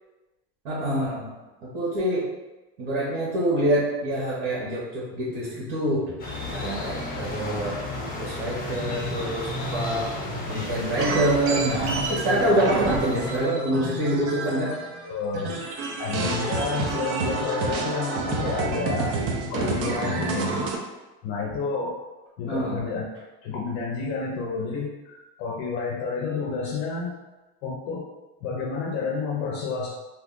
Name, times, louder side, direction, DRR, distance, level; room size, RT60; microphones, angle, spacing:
voice 1, 0.6-1.3 1.6-2.3 2.8-6.1 6.5-7.7 8.2-10.1 10.5-14.7 22.5-22.8, right 1 dB, 85° right, -8 dB, 1.2 m, -26 dB
sound 1, 6.2-13.4, left 1 dB, 30° left, 1.1 m, -33 dB
sound 2, 11.0-15.1 15.3-20.8, right 3 dB, 45° right, 0.6 m, -29 dB
voice 2, 15.0-19.2 19.5-20.5 21.2-22.0 22.4-23.1 23.4-27.1 27.6-28.1 28.4-29.9, left 4 dB, 60° left, -2 dB, 0.7 m, -30 dB
2.7 x 2.4 x 3.6 m, 1.1 s
cardioid pair, 145°, 31 cm